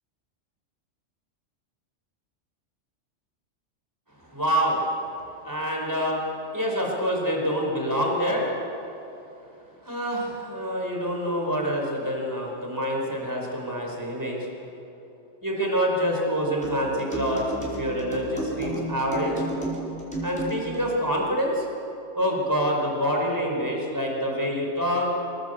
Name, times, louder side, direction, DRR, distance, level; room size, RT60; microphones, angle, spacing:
voice 1, 4.2-4.8 5.4-6.3 6.5-8.5 9.8-14.5 15.4-19.4 20.2-21.7 22.1-25.1, equal, 15° right, -1 dB, 4.9 m, -26 dB
sound 1, 16.6-20.9, right 1 dB, 5° left, 5.4 m, -32 dB
26.0 x 18.0 x 8.3 m, 2.9 s
omnidirectional pair, 1.3 m